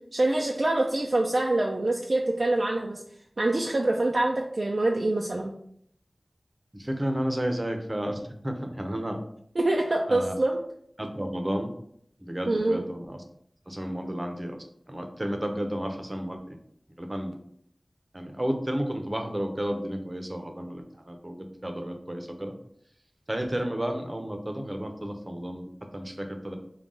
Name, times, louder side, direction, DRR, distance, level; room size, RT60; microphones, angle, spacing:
voice 1, 0.1-3.0 3.4-5.5 9.6-10.6 12.5-12.8, right 2 dB, 65° right, 0 dB, 0.4 m, -25 dB
voice 2, 6.7-9.2 10.1-10.3 11.0-11.7 12.2-13.2 13.7-14.6 14.9-16.6 17.0-17.4 18.1-22.6 23.3-26.6, equal, 35° right, 4 dB, 0.7 m, -32 dB
3.8 x 2.3 x 3.6 m, 0.68 s
wide cardioid pair, 40°, 0 cm